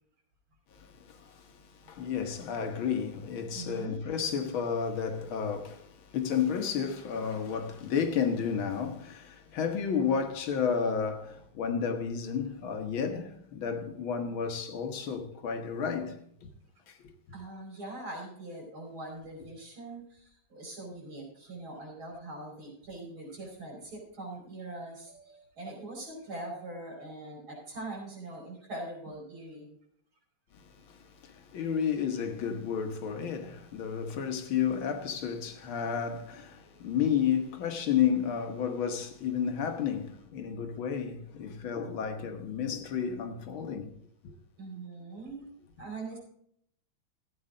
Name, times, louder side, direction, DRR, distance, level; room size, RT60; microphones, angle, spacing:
voice 1, 0.7-16.5 16.9-17.1 30.5-44.0 44.2-44.4, left 7 dB, 80° left, 2.1 m, -32 dB
voice 2, 3.5-4.0 17.3-29.8 44.6-45.4 45.8-46.2, right 2 dB, 85° right, 5.8 m, -42 dB
15.0 x 8.8 x 3.8 m
omnidirectional pair, 2.2 m